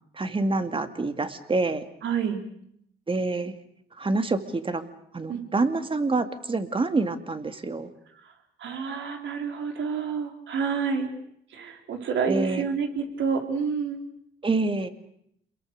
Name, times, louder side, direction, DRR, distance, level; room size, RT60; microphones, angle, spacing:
voice 1, 0.1-1.8 3.1-3.5 4.0-4.8 5.1-7.9 12.3-12.7 14.4-14.9, right 3 dB, 25° right, 9 dB, 2.3 m, -26 dB
voice 2, 2.0-2.4 5.3-5.4 8.6-11.1 11.5-14.0, right 6 dB, 70° right, 4 dB, 4.3 m, -28 dB
28.0 x 22.5 x 6.7 m, 0.70 s
cardioid pair, 90°, 20 cm